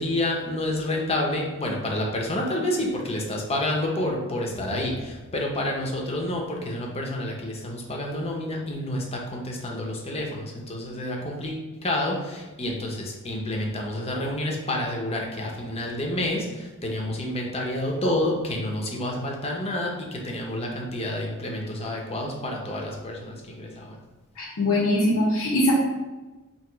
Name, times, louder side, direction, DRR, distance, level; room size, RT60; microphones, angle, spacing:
voice 1, 0.0-24.0, left 1 dB, 30° left, -1 dB, 0.7 m, -29 dB
voice 2, 24.4-25.7, left 1 dB, 75° left, -6 dB, 0.8 m, -22 dB
3.0 x 2.9 x 4.5 m, 1.2 s
head